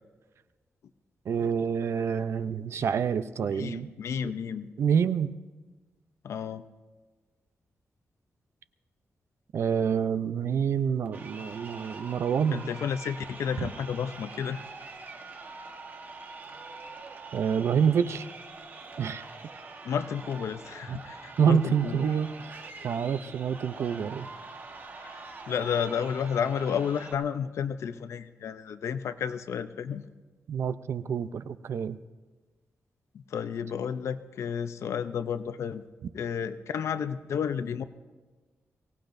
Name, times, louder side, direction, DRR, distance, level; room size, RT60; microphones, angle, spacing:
voice 1, 1.3-3.9 4.8-5.3 9.5-12.7 13.6-13.7 17.3-18.3 19.0-19.2 20.9-21.0 21.4-24.3 30.5-32.0, right 7 dB, 70° right, 12 dB, 0.5 m, -27 dB
voice 2, 3.5-4.7 6.2-6.6 12.5-14.6 19.8-22.0 25.0-30.0 33.1-35.8 36.1-37.8, left 7 dB, 85° left, 11 dB, 0.6 m, -32 dB
Crowd, 11.1-27.1, right 3 dB, 45° right, 1.2 m, -44 dB
23.5 x 18.0 x 2.6 m, 1.3 s
wide cardioid pair, 165°, 5 cm